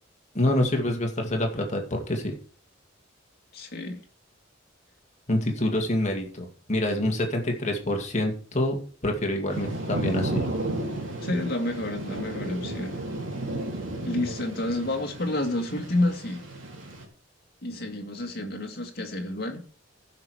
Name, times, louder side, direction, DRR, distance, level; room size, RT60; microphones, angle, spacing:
voice 1, 0.3-2.3 5.3-10.4, left 1 dB, 35° left, 2.2 m, -26 dB
voice 2, 3.5-4.0 11.2-13.0 14.0-16.5 17.6-19.6, left 1 dB, 50° left, 2.0 m, -29 dB
Thunder / Rain, 9.5-17.1, right 1 dB, 75° right, 2.9 m, -33 dB
15.0 x 6.0 x 4.8 m
head